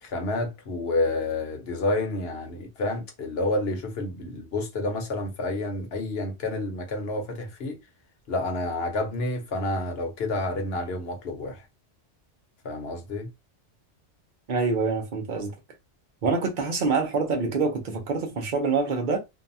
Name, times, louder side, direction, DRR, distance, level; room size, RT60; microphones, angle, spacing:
voice 1, 0.0-7.8 8.3-11.6 12.6-13.3, left 2 dB, 60° left, 1.0 m, -29 dB
voice 2, 14.5-15.5 16.2-19.2, right 4 dB, 50° right, 0.7 m, -26 dB
2.7 x 2.3 x 2.6 m
omnidirectional pair, 1.2 m